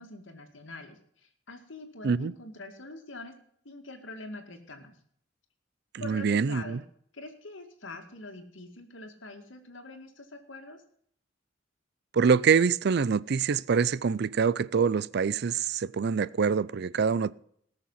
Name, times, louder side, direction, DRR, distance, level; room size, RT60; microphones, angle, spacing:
voice 1, 0.0-3.3 3.6-5.0 6.0-6.8 7.1-10.8, left 2 dB, 85° left, 2.2 m, -44 dB
voice 2, 6.0-6.8 12.1-17.3, right 6 dB, 60° right, 0.4 m, -25 dB
18.5 x 6.7 x 5.6 m
head